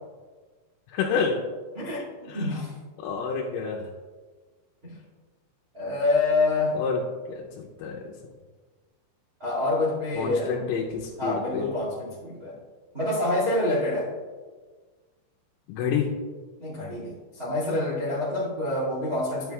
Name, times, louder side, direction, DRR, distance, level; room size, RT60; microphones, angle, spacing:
voice 1, 0.9-1.4 2.3-2.6 3.0-3.9 6.7-7.0 7.3-8.0 10.2-11.7 15.7-16.1, left 6 dB, 85° left, -2 dB, 3.4 m, -29 dB
voice 2, 1.7-2.7 4.8-5.0 5.7-6.8 9.4-10.5 11.2-12.6 12.9-14.1 16.6-19.5, left 2 dB, 60° right, -7 dB, 0.9 m, -27 dB
11.0 x 8.3 x 2.4 m, 1.4 s
omnidirectional pair, 5.8 m